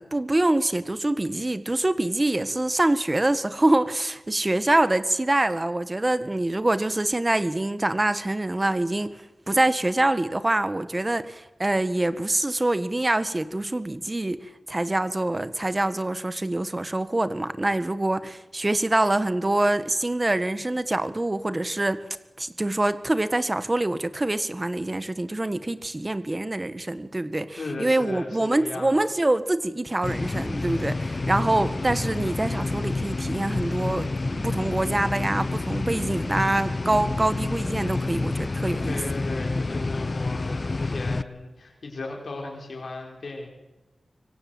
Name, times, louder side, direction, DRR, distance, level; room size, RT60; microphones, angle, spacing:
voice 1, 0.0-22.0 22.4-39.0, right 2 dB, 25° right, 1.5 m, -25 dB
voice 2, 27.6-28.9 38.8-43.5, left 2 dB, 70° left, 4.7 m, -36 dB
sound 1, 30.0-41.2, left 3 dB, 40° left, 0.8 m, -28 dB
25.0 x 24.5 x 7.9 m
wide cardioid pair, 90°, 0 cm